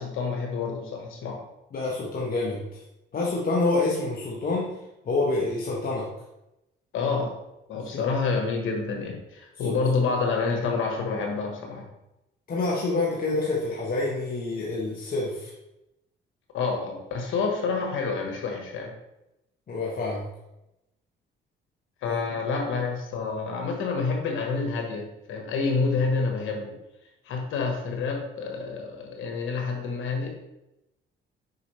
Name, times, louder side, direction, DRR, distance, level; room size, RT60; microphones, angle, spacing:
voice 1, 0.0-1.4 6.9-7.4 7.7-11.9 16.5-18.9 22.0-26.7 27.2-30.3, left 4 dB, 85° left, 1 dB, 1.5 m, -28 dB
voice 2, 1.7-2.8 3.1-4.7 5.1-6.1 12.5-15.5 19.7-20.2 22.0-22.2, left 3 dB, 45° left, -4 dB, 1.4 m, -27 dB
6.9 x 5.4 x 3.3 m, 0.90 s
cardioid pair, 90°, 20 cm